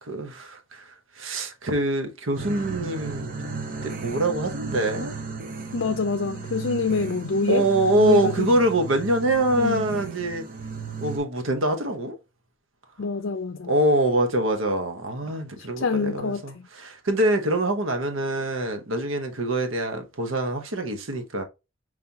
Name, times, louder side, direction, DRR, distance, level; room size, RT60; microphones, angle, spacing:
voice 1, 0.0-3.4 3.8-5.2 7.5-10.4 11.0-12.2 13.7-21.4, right 1 dB, 75° right, 1.0 m, -24 dB
sound 1, 2.4-11.2, right 4 dB, 45° right, 0.8 m, -35 dB
voice 2, 5.7-7.7 7.9-8.5 9.5-9.8 13.0-13.7 15.8-16.4, left 4 dB, 65° left, 0.5 m, -25 dB
5.4 x 3.2 x 2.8 m
head